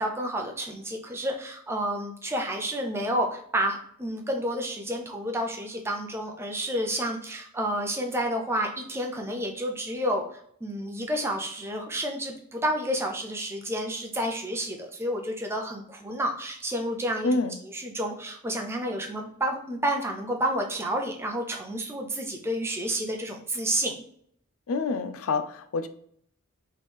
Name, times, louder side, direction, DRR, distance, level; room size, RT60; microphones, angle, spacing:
voice 1, 0.0-17.4 17.7-24.0, right 1 dB, 10° right, 2 dB, 0.6 m, -30 dB
voice 2, 17.2-17.6 24.7-25.9, left 3 dB, 65° left, 10 dB, 0.4 m, -27 dB
4.3 x 3.2 x 3.4 m, 0.66 s
head